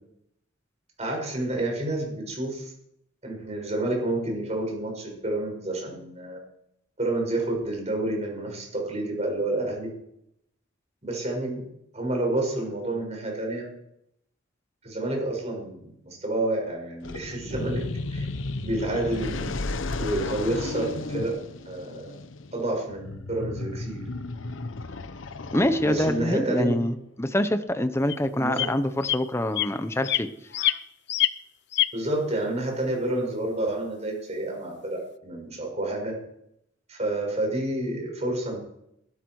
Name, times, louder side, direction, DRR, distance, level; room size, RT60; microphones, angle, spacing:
voice 1, 1.0-2.7 3.2-6.4 7.0-9.9 11.0-11.7 11.9-13.7 14.8-17.9 18.1-18.3 18.6-19.5 20.0-21.4 21.6-22.1 22.5-24.0 25.8-26.8 28.4-28.7 31.9-36.2 36.9-38.6, right 1 dB, 35° right, 1 dB, 6.5 m, -29 dB
sound 1, 17.0-26.5, left 2 dB, 85° left, 1.0 m, -34 dB
voice 2, 25.5-30.3, left 1 dB, 15° left, 10 dB, 0.9 m, -25 dB
sound 2, 28.1-28.2 28.6-28.7 29.0-29.2 29.6-29.7 30.0-30.2 30.5-30.8 31.1-31.3 31.7-31.9, left 14 dB, 60° left, 0.6 m, -24 dB
20.0 x 13.0 x 4.8 m, 0.78 s
head